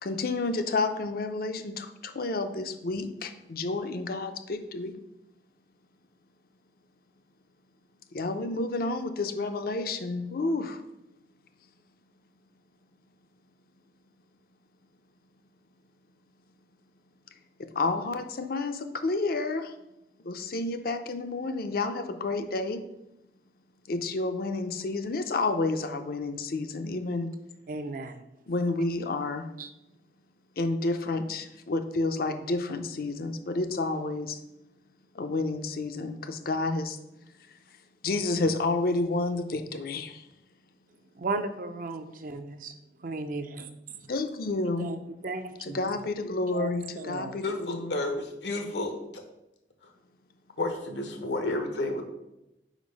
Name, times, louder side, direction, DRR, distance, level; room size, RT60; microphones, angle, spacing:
voice 1, 0.0-4.9 8.1-10.8 17.6-19.7 20.2-22.8 23.9-27.3 28.5-29.5 30.6-34.4 35.1-37.0 38.0-40.2 44.1-44.9 45.6-47.9, left 3 dB, 55° left, 8 dB, 0.6 m, -30 dB
voice 2, 27.7-28.2 29.6-29.7 41.1-42.7 43.0-44.1 44.8-45.8 46.5-47.4, right 3 dB, 50° right, 8 dB, 0.5 m, -36 dB
voice 3, 47.4-48.9 50.6-52.0, left 2 dB, 80° left, 5 dB, 1.1 m, -31 dB
5.1 x 4.7 x 5.2 m, 0.90 s
head